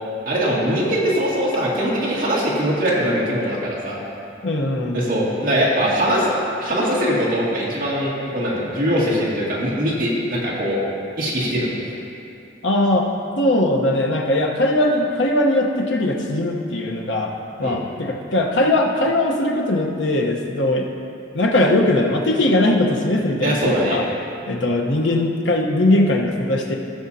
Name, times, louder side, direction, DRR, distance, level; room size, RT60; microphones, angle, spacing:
voice 1, 0.3-4.0 4.9-6.3 6.6-10.8 11.2-11.7 17.6-17.8 23.4-24.0, equal, 45° right, -6 dB, 2.1 m, -21 dB
voice 2, 4.4-5.0 12.6-13.1 13.4-17.3 17.6-20.9 21.3-24.0 24.5-26.8, left 1 dB, 70° left, 1 dB, 1.0 m, -20 dB
16.0 x 6.3 x 2.8 m, 2.7 s
head